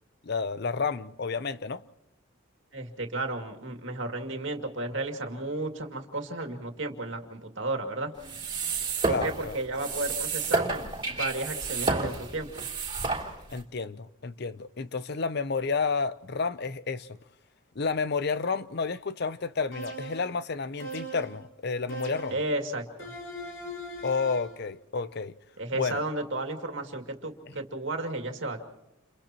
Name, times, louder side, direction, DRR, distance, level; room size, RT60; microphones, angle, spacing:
voice 1, 0.2-1.8 9.1-9.6 13.5-17.1 17.8-22.4 24.0-25.3 25.7-26.0, left 4 dB, 50° left, 0.6 m, -30 dB
voice 2, 2.7-8.1 9.0-12.7 22.3-23.1 25.6-28.6, right 2 dB, 60° right, 2.4 m, -33 dB
sound 1, 8.2-13.6, right 3 dB, 25° right, 3.2 m, -31 dB
sound 2, 19.7-20.4 20.8-21.4 21.9-22.5 23.0-24.6, right 1 dB, 65° left, 5.5 m, -40 dB
29.5 x 29.5 x 3.0 m
head